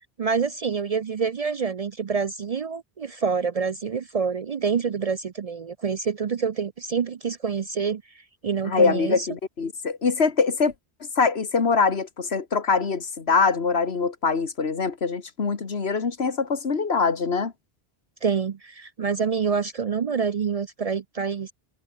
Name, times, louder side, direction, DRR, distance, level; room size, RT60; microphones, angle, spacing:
voice 1, 0.2-8.0 8.4-9.3 18.2-21.5, right 6 dB, 45° right, 0.5 m, -27 dB
voice 2, 8.7-10.7 11.2-17.5, left 5 dB, 80° left, 2.0 m, -23 dB
omnidirectional pair, 1.0 m